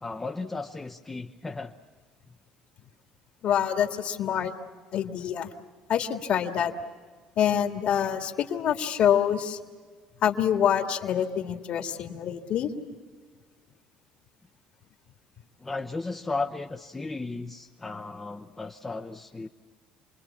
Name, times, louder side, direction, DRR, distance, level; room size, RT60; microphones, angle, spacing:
voice 1, 0.0-1.7 15.6-19.5, left 3 dB, 15° left, 3 dB, 0.8 m, -35 dB
voice 2, 3.4-4.5 4.9-5.5 5.9-6.7 7.4-9.6 10.2-12.7, left 9 dB, 50° left, 5 dB, 2.0 m, -26 dB
28.5 x 21.5 x 7.2 m, 1.6 s
cardioid pair, 145°, 3 cm